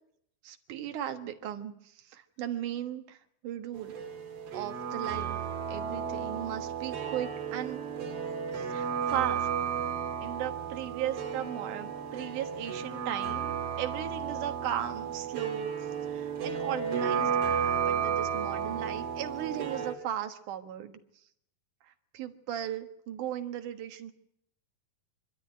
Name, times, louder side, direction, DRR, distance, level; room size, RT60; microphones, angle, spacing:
voice 1, 0.4-3.2 3.4-4.0 4.5-5.4 5.7-7.8 8.5-9.5 10.2-15.7 16.1-17.6 17.9-20.9 21.8-24.1, right 11 dB, 65° right, 6 dB, 2.8 m, -37 dB
sound 1, 3.7-19.9, right 7 dB, 50° right, 2.6 m, -33 dB
26.0 x 12.5 x 9.3 m, 0.74 s
omnidirectional pair, 4.0 m